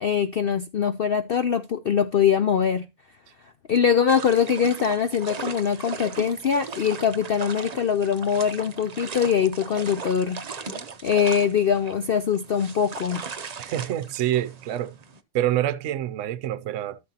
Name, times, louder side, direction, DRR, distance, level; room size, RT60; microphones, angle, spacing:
voice 1, 0.0-2.9 3.7-10.4 11.0-13.2, left 7 dB, 65° left, 0.5 m, -23 dB
sound 1, 4.1-15.2, right 5 dB, 45° right, 0.5 m, -38 dB
voice 2, 13.6-15.0 15.3-17.0, right 12 dB, 60° right, 0.9 m, -26 dB
13.0 x 6.5 x 2.8 m
omnidirectional pair, 1.6 m